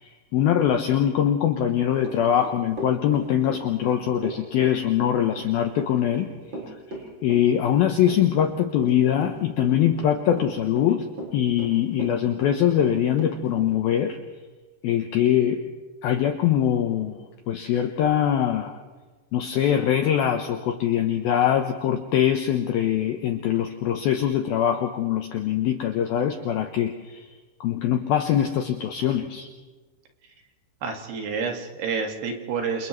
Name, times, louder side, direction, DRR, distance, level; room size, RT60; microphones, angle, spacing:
voice 1, 0.0-6.3 7.2-11.1 11.3-14.2 14.8-15.6 16.0-17.2 17.5-18.8 19.3-27.3 27.6-29.5, left 10 dB, 80° left, 6 dB, 2.2 m, -23 dB
Run / Walk footsteps, 2.0-13.7, right 2 dB, 25° right, 4.9 m, -36 dB
voice 2, 30.8-32.9, right 5 dB, 65° right, 3 dB, 3.8 m, -29 dB
28.5 x 28.5 x 3.2 m, 1.3 s
omnidirectional pair, 5.5 m